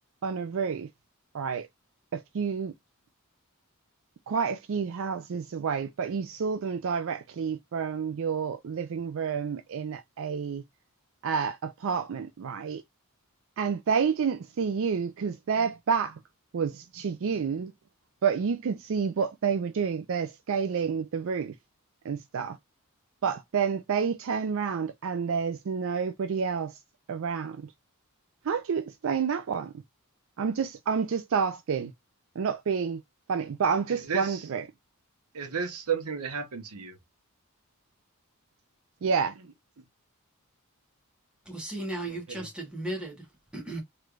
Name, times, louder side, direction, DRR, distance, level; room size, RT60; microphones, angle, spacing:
voice 1, 0.2-0.9 1.3-1.7 2.1-2.7 4.3-10.6 11.2-12.8 13.6-16.2 16.5-17.7 18.2-21.5 22.0-22.6 23.2-26.7 27.1-27.6 28.4-29.7 30.4-31.9 32.4-33.0 33.3-34.6 39.0-39.3, right 6 dB, 60° right, 0.4 m, -29 dB
voice 2, 33.9-34.5 35.3-37.0 39.0-39.1 42.3-42.4, right 6 dB, 80° right, 0.9 m, -33 dB
voice 3, 41.4-43.8, right 1 dB, 5° right, 1.3 m, -36 dB
3.2 x 3.2 x 2.4 m
head